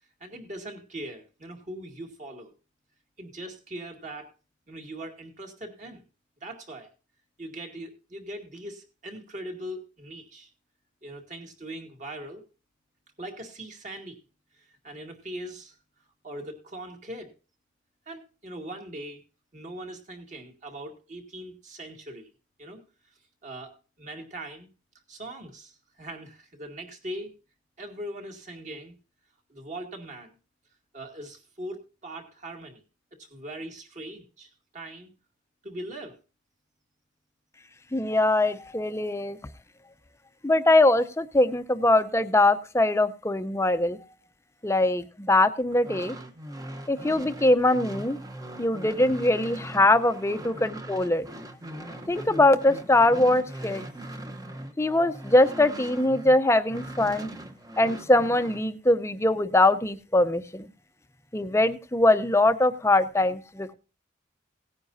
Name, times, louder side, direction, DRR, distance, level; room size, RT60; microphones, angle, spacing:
voice 1, 0.2-2.5 3.2-4.3 4.7-6.0 6.4-6.9 7.4-10.5 11.0-12.4 13.2-14.2 14.6-15.8 16.2-17.3 18.1-19.2 19.5-22.3 22.6-22.8 23.4-24.7 25.1-27.3 27.8-28.9 29.5-30.3 30.9-32.8 33.2-35.1 35.6-36.2, right 1 dB, 40° right, 3 dB, 2.2 m, -40 dB
voice 2, 37.9-39.4 40.4-44.0 44.6-46.2 46.9-48.2 48.6-51.3 52.1-53.8 54.8-57.3 57.8-60.7 61.3-63.7, left 2 dB, 15° left, 10 dB, 0.6 m, -22 dB
sound 1, 45.7-56.4 56.7-58.6, right 1 dB, 20° right, 0.9 m, -40 dB
17.5 x 9.7 x 2.7 m, 0.31 s
head